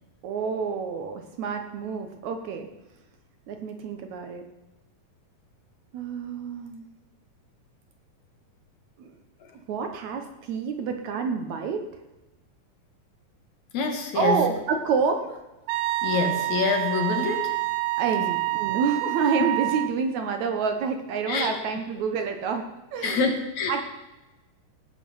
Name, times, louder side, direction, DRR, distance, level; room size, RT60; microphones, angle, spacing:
voice 1, 0.2-2.7 3.5-4.5 5.9-6.9 9.0-9.1 9.5-11.9 14.1-15.4 18.0-23.3 23.7-23.8, right 5 dB, 65° right, 5 dB, 2.1 m, -28 dB
voice 2, 13.7-14.4 16.0-17.5 21.3-21.5 23.0-23.8, left 5 dB, 65° left, 5 dB, 2.4 m, -26 dB
Wind instrument woodwind instrument, 15.7-19.9, right 19 dB, 85° right, 2.3 m, -27 dB
18.0 x 8.2 x 5.6 m, 1.0 s
omnidirectional pair, 3.9 m